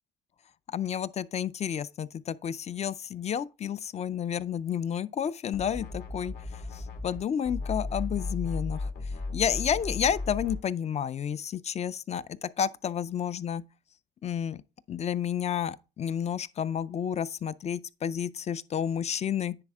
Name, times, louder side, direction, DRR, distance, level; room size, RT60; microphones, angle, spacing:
voice 1, 0.7-6.3 6.7-8.9 9.3-13.6 14.2-14.6 14.9-19.6, left 8 dB, 35° left, 0.4 m, -31 dB
sound 1, 5.5-7.2 7.4-10.6, left 3 dB, 65° left, 2.1 m, -35 dB
9.8 x 4.2 x 3.5 m
cardioid pair, 125°, 18 cm